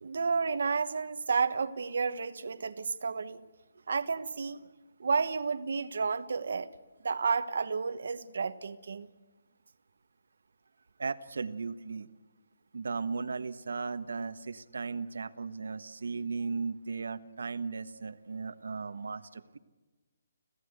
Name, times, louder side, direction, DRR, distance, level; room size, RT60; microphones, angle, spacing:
voice 1, 0.0-3.4 3.9-4.6 5.0-6.7 7.0-9.1, right 5 dB, 60° right, 1.2 m, -31 dB
voice 2, 11.0-12.1 12.7-19.6, right 4 dB, 85° right, 1.3 m, -36 dB
26.5 x 16.5 x 8.2 m
hypercardioid pair, 175°, 0 cm